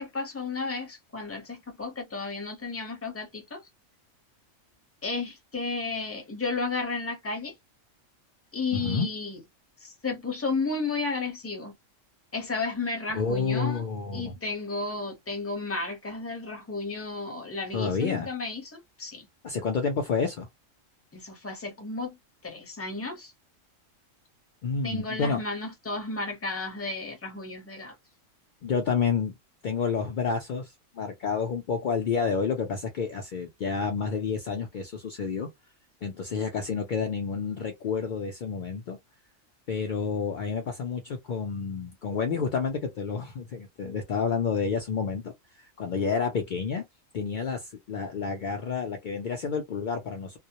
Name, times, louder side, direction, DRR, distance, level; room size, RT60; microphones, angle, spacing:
voice 1, 0.0-3.6 5.0-7.5 8.5-9.4 9.8-11.7 12.3-13.8 14.1-19.3 21.1-22.2 22.4-23.3 24.8-27.9, left 3 dB, 15° left, 0.6 m, -33 dB
voice 2, 8.7-9.1 13.1-14.3 17.7-18.3 19.4-20.5 24.6-25.4 28.6-29.3 29.6-35.5 36.0-39.0 39.7-46.8 47.1-50.4, left 5 dB, 70° left, 0.4 m, -29 dB
2.2 x 2.0 x 2.8 m
omnidirectional pair, 1.3 m